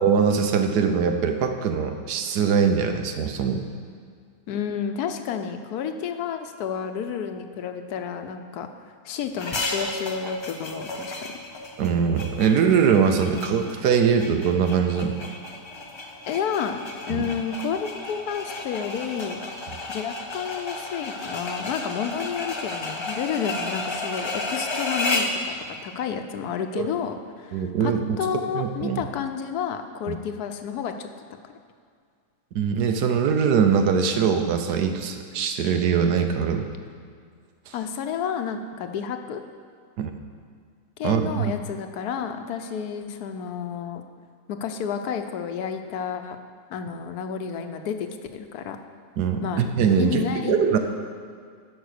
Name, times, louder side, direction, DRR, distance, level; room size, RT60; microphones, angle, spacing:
voice 1, 0.0-3.6 11.8-15.2 17.1-17.3 26.8-26.9 27.5-28.2 28.5-29.0 30.1-30.2 32.5-36.7 37.7-37.8 40.0-40.1 41.0-41.5 49.2-50.8, right 6 dB, 80° right, 6 dB, 1.3 m, -22 dB
voice 2, 4.5-8.7 9.0-11.1 16.3-16.8 17.1-19.4 19.9-31.1 37.7-39.4 41.0-44.0 44.5-46.4 46.7-48.8 49.4-49.7 50.0-50.6, left 7 dB, 75° left, 7 dB, 1.2 m, -30 dB
sound 1, 9.4-25.4, left 2 dB, 40° left, 0.3 m, -32 dB
11.0 x 5.5 x 6.5 m, 2.1 s
omnidirectional pair, 1.7 m